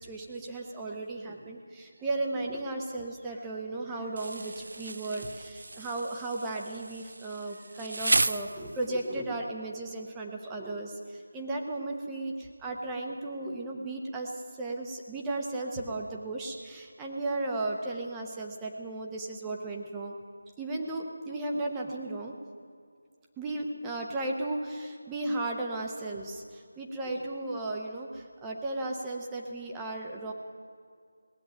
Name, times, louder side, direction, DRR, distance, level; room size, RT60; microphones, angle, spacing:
voice 1, 0.0-20.2 20.6-22.4 23.4-30.3, right 2 dB, 10° right, 0 dB, 1.0 m, -35 dB
Insect, 4.2-9.1, right 2 dB, 65° right, 0.4 m, -33 dB
18.5 x 7.6 x 8.9 m, 2.2 s
figure-of-eight pair, 170°, 0 cm